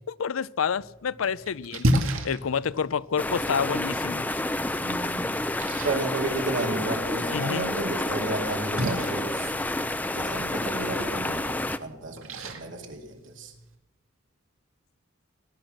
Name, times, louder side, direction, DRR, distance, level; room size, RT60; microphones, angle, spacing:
voice 1, 0.1-1.9 2.2-4.3 7.3-7.7, left 6 dB, 90° left, 0.5 m, -28 dB
Splash splatter, 0.8-13.8, equal, 90° right, 2.2 m, -34 dB
sound 1, 3.2-11.8, left 1 dB, 10° left, 0.5 m, -29 dB
voice 2, 4.8-5.4 5.8-9.5 10.1-13.5, right 2 dB, 65° right, 2.7 m, -32 dB
19.5 x 11.5 x 6.5 m
head